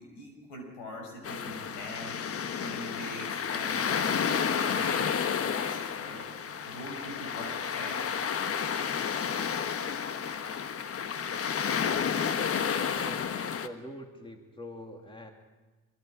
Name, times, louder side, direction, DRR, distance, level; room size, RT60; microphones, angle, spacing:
voice 1, 0.0-2.2 2.6-6.3 6.6-8.0, left 1 dB, 90° left, 3 dB, 5.4 m, -43 dB
sound 1, 1.2-13.7, left 7 dB, 45° left, 1.2 m, -31 dB
voice 2, 12.9-15.3, equal, 15° left, 3 dB, 2.9 m, -44 dB
24.0 x 22.0 x 5.1 m, 1.2 s
supercardioid pair, 65°, 32 cm